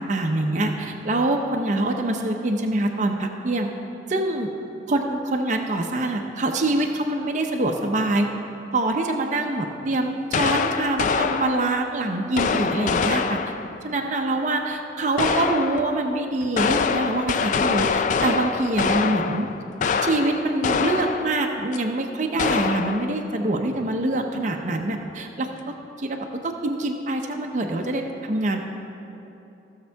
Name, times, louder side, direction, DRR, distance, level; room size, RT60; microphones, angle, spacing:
voice 1, 0.0-3.7 4.1-4.5 4.9-8.3 8.7-13.4 13.8-19.5 20.0-25.5 26.0-28.6, right 2 dB, 40° right, 3 dB, 0.7 m, -25 dB
sound 1, 10.3-11.9 12.4-13.8 15.2-16.0 16.4-21.5 21.7-21.8 22.4-23.2, left 5 dB, 45° left, 0.3 m, -25 dB
15.5 x 6.7 x 3.4 m, 2.9 s
head